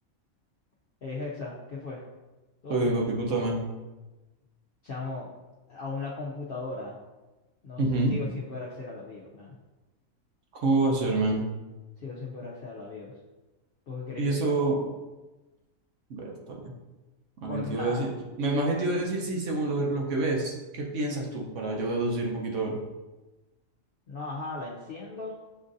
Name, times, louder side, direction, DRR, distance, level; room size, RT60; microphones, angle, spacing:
voice 1, 1.0-2.0 2.6-2.9 4.8-5.3 5.7-7.0 7.6-7.8 8.1-9.6 12.0-13.1 13.9-14.6 17.5-18.0 18.6-18.8 24.1-25.3, left 3 dB, 55° left, -5 dB, 0.7 m, -37 dB
voice 2, 2.7-3.6 7.8-8.2 10.5-11.4 14.2-14.8 16.1-16.7 17.4-18.1 18.4-22.8, right 2 dB, 65° right, -1 dB, 1.1 m, -27 dB
7.3 x 2.5 x 2.6 m, 1.1 s
omnidirectional pair, 1.4 m